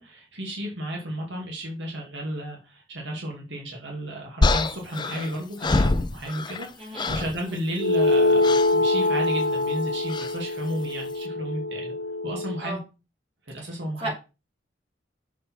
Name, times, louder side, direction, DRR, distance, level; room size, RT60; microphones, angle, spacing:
voice 1, 0.0-11.9 12.2-12.8 13.5-14.1, equal, 65° right, 2.2 m, -33 dB
sound 1, 4.4-6.7 7.0-7.4 8.4-8.7 10.1-10.4, left 2 dB, 25° left, 0.5 m, -25 dB
voice 2, 6.8-7.1 7.5-7.6 12.6-12.8 14.0-14.1, right 2 dB, 30° right, 3.0 m, -33 dB
sound 2, 7.8-12.6, left 2 dB, 85° left, 0.9 m, -24 dB
6.6 x 5.1 x 4.5 m
head